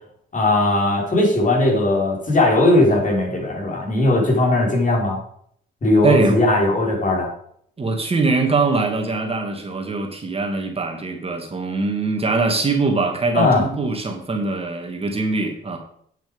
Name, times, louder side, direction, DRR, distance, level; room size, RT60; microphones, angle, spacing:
voice 1, 0.3-5.2 5.8-7.3 13.3-13.6, left 2 dB, 40° left, -1 dB, 5.1 m, -18 dB
voice 2, 6.0-6.5 7.8-15.8, right 3 dB, 30° right, 3 dB, 2.1 m, -22 dB
9.2 x 7.5 x 5.4 m, 0.64 s
cardioid pair, 90°, 20 cm